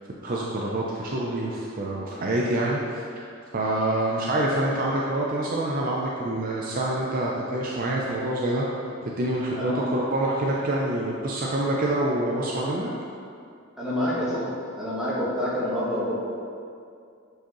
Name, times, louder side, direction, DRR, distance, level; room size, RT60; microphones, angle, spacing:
voice 1, 0.2-2.8 3.5-8.7 9.0-12.9, right 1 dB, 40° right, -3 dB, 0.5 m, -26 dB
voice 2, 13.8-16.2, left 1 dB, ahead, -9 dB, 1.4 m, -27 dB
7.1 x 4.8 x 3.0 m, 2.4 s
head